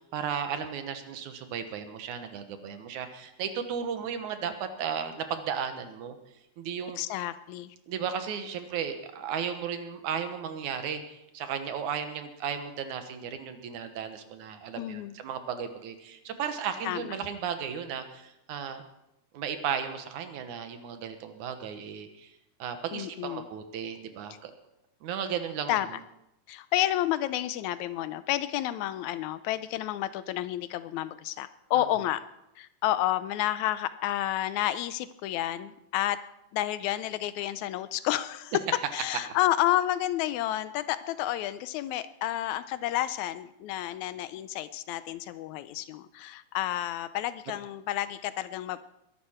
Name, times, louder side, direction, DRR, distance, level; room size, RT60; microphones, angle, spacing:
voice 1, 0.1-6.2 6.6-7.0 7.9-18.8 19.3-22.3 22.6-24.5 25.0-25.8 31.7-31.9, right 7 dB, 85° right, 8 dB, 2.7 m, -35 dB
voice 2, 7.0-7.8 14.8-15.1 16.8-17.2 22.9-23.5 25.7-25.9 26.5-32.2 32.6-36.2 36.5-38.5 38.9-49.0, left 13 dB, 80° left, 14 dB, 2.0 m, -30 dB
21.5 x 11.5 x 4.4 m, 0.85 s
omnidirectional pair, 3.4 m